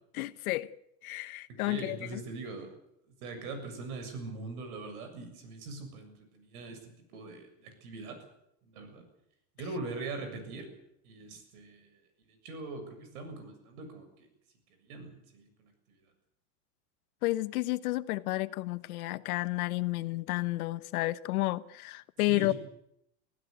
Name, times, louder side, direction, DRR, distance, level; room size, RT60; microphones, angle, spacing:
voice 1, 0.1-0.7 1.0-2.2 17.2-22.5, left 19 dB, 75° left, 1.1 m, -31 dB
voice 2, 1.5-2.7 3.2-8.2 8.6-9.0 9.6-10.7 11.0-12.0 12.2-14.3 14.8-16.0 22.3-22.5, right 3 dB, 85° right, 7.3 m, -42 dB
25.0 x 16.0 x 8.2 m
supercardioid pair, 170°, 43 cm